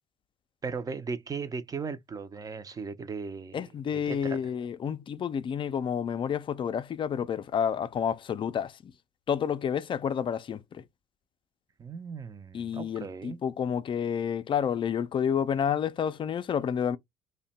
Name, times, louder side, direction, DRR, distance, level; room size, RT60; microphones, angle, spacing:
voice 1, 0.6-3.6 3.9-4.4 11.8-13.4, right 5 dB, 25° right, 0.5 m, -37 dB
voice 2, 3.5-8.9 9.3-10.8 12.5-17.0, left 8 dB, 40° left, 0.4 m, -30 dB
2.7 x 2.2 x 4.0 m
supercardioid pair, 85°, 13 cm